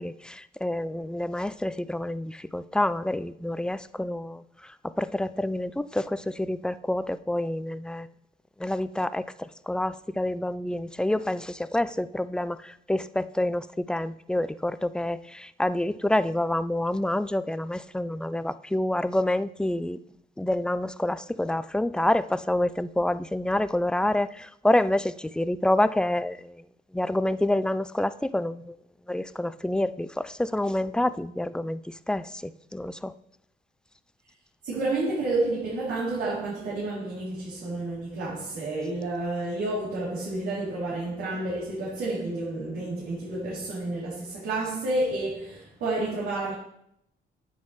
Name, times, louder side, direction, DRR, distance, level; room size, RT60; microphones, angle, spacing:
voice 1, 0.0-8.1 8.6-20.0 20.4-26.6 26.9-28.8 29.1-33.1, left 1 dB, 5° left, 0.4 m, -28 dB
voice 2, 34.6-46.5, right 2 dB, 80° right, 3.0 m, -30 dB
9.6 x 8.4 x 3.1 m
cardioid pair, 90°, 20 cm